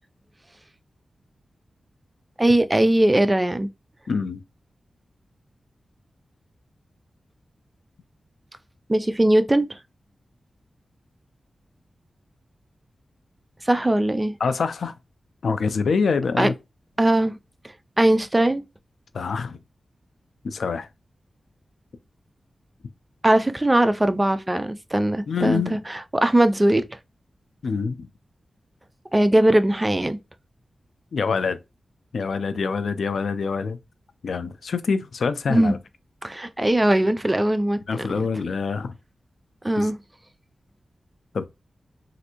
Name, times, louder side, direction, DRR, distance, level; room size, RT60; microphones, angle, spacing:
voice 1, 2.4-3.7 8.9-9.8 13.6-14.3 16.4-16.5 17.0-17.3 18.0-18.6 23.2-26.8 29.1-30.2 35.5-35.8 36.2-38.3 39.6-40.0, right 1 dB, 20° right, 0.4 m, -20 dB
voice 2, 4.1-4.4 14.4-14.9 15.4-16.5 19.1-19.6 20.4-20.9 25.3-25.8 27.6-28.1 31.1-31.6 32.1-33.8 34.2-35.8 37.9-38.9 39.8-39.9 41.3-41.5, left 5 dB, 80° left, 0.4 m, -25 dB
3.2 x 2.5 x 2.9 m
wide cardioid pair, 70°, 0 cm